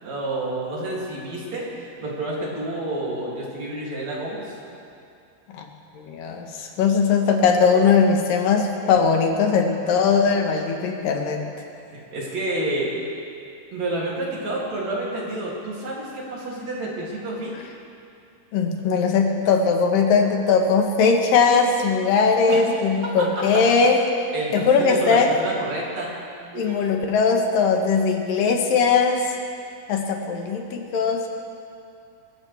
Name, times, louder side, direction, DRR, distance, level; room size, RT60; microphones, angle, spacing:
voice 1, 0.0-4.5 11.9-12.9 13.7-17.5 22.5-22.6 24.3-26.2 26.5-26.8, right 2 dB, 55° right, -5 dB, 3.9 m, -29 dB
voice 2, 5.9-11.4 18.5-24.0 24.5-25.4 26.6-29.3 29.9-31.3, left 5 dB, 80° left, 2 dB, 2.9 m, -20 dB
24.5 x 15.0 x 3.4 m, 2.5 s
omnidirectional pair, 4.0 m